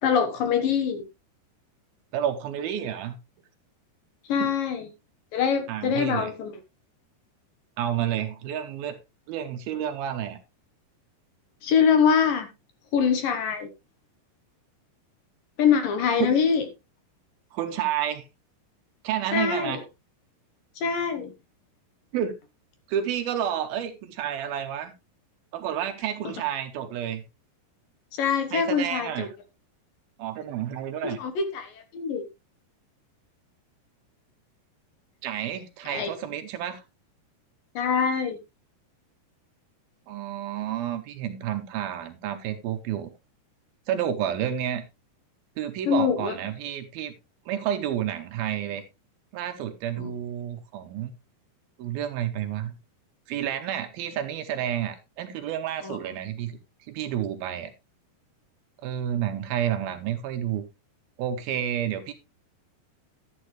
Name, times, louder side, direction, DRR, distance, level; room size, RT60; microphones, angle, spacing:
voice 1, 0.0-1.0 4.3-4.9 5.3-6.5 11.6-12.5 12.9-13.7 15.6-16.6 19.3-19.8 20.8-21.3 28.2-29.3 31.0-32.2 35.9-36.1 37.8-38.4 45.9-46.4 50.0-50.1 55.8-56.0, left 7 dB, 65° left, 2.5 m, -24 dB
voice 2, 2.1-3.2 4.4-4.5 5.7-6.3 7.8-9.0 9.3-10.4 16.2-16.4 17.5-18.3 19.0-19.8 22.1-22.3 22.9-24.9 25.5-27.2 28.5-29.4 30.2-31.2 35.2-36.8 40.1-43.1 43.9-44.8 45.6-47.1 47.5-48.8 49.3-51.1 51.8-52.8 53.3-56.6 56.9-57.7 58.8-60.6 61.2-62.1, right 10 dB, 75° right, 2.5 m, -30 dB
11.5 x 9.9 x 3.2 m
omnidirectional pair, 4.9 m